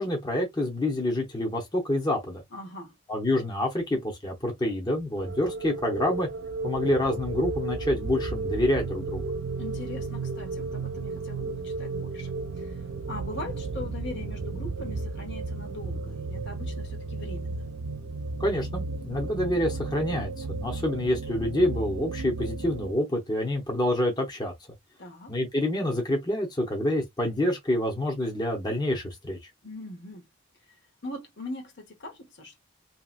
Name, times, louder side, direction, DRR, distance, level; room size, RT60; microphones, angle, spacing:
voice 1, 0.0-2.4 3.1-6.3 6.6-9.3 18.4-24.5 25.3-29.5, left 1 dB, 20° left, 0.9 m, -27 dB
voice 2, 2.5-3.0 9.6-17.6 25.0-25.4 29.6-30.3 30.7-32.6, left 2 dB, 55° left, 1.0 m, -41 dB
sound 1, 5.2-22.9, right 3 dB, 70° right, 0.4 m, -34 dB
2.9 x 2.9 x 2.4 m
head